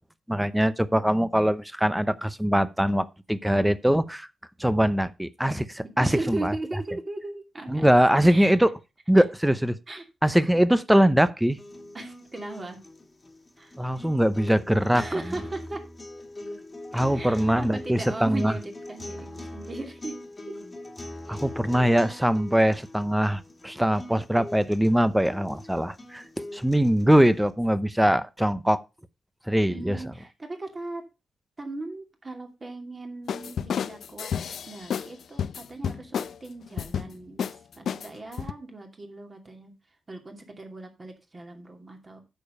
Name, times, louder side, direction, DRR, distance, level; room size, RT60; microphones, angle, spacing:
voice 1, 0.3-4.3 4.6-6.5 7.7-8.7 9.1-9.8 10.2-11.6 13.8-15.0 16.9-18.5 21.3-28.8 29.5-30.0, equal, 5° right, 0.7 m, -22 dB
voice 2, 6.0-7.9 8.2-8.5 9.2-9.3 9.9-10.0 11.9-12.8 13.6-13.7 14.9-15.8 17.1-20.2 21.3-21.4 29.7-31.0 31.6-34.3 34.7-39.7 40.1-42.2, right 2 dB, 25° right, 2.6 m, -37 dB
sound 1, 11.5-27.5, left 1 dB, 20° left, 1.9 m, -42 dB
sound 2, 33.3-35.1 35.4-36.4 36.8-37.1 37.4-37.6 37.9-38.5, left 8 dB, 70° left, 0.5 m, -30 dB
9.1 x 7.0 x 5.4 m
wide cardioid pair, 135°, 0 cm